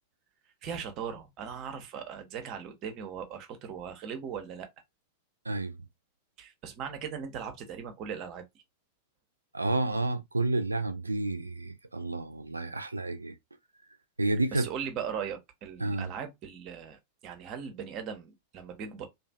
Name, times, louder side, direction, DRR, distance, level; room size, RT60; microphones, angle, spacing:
voice 1, 0.6-4.7 6.4-8.4 14.5-19.1, right 7 dB, 35° right, 0.6 m, -39 dB
voice 2, 9.5-13.4 14.2-14.7 15.8-16.1, right 2 dB, 80° right, 0.3 m, -30 dB
2.5 x 2.4 x 2.2 m
figure-of-eight pair, 90°, 0 cm